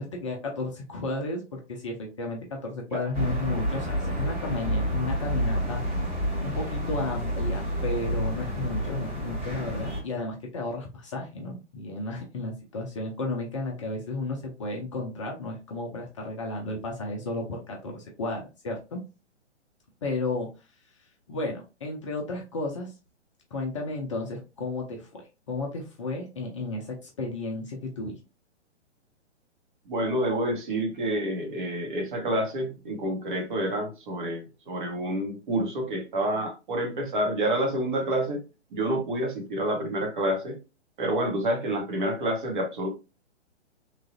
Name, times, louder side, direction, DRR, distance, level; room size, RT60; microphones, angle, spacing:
voice 1, 0.0-5.8 6.1-19.0 20.0-20.5 21.3-22.9 23.5-25.2 25.5-28.2, left 2 dB, 30° left, 0.5 m, -33 dB
sound 1, 3.1-10.0, equal, 15° right, 1.2 m, -29 dB
voice 2, 29.9-38.4 38.7-40.6 41.0-42.9, right 1 dB, 45° right, 1.0 m, -28 dB
3.2 x 2.3 x 2.6 m
figure-of-eight pair, 125°, 35 cm